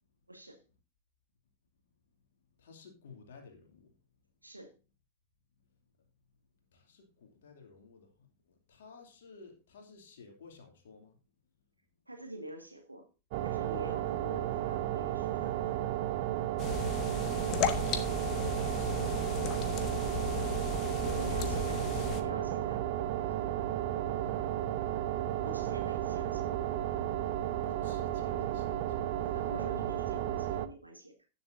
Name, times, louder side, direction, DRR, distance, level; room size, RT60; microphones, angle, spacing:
voice 1, 0.3-0.6 4.4-4.7 12.1-13.1 13.4-15.7 21.0-22.8 23.2-23.6 24.0-24.8 25.4-26.8 29.3-31.3, right 1 dB, 85° right, 1.9 m, -46 dB
voice 2, 2.6-3.9 6.7-11.2 17.3-19.4 20.3-22.5 27.6-29.3, left 4 dB, 60° left, 2.7 m, -53 dB
sound 1, 13.3-30.7, right 12 dB, 50° right, 0.8 m, -33 dB
sound 2, 16.6-22.2, left 6 dB, 35° left, 1.4 m, -35 dB
18.0 x 7.1 x 2.7 m
figure-of-eight pair, 90°, 0 cm